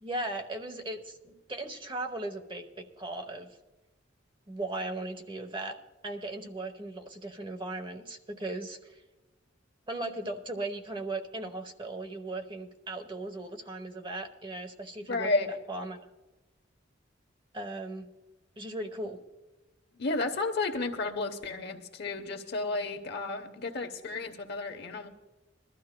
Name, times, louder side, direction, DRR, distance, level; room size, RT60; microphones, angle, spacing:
voice 1, 0.0-3.5 4.5-5.8 6.0-9.0 9.9-15.3 15.7-16.1 17.5-18.1 18.6-19.2, right 2 dB, 25° right, 5 dB, 0.9 m, -37 dB
voice 2, 15.1-15.6 20.0-25.1, left 3 dB, 60° left, 5 dB, 0.9 m, -32 dB
22.0 x 12.5 x 2.2 m, 1.1 s
head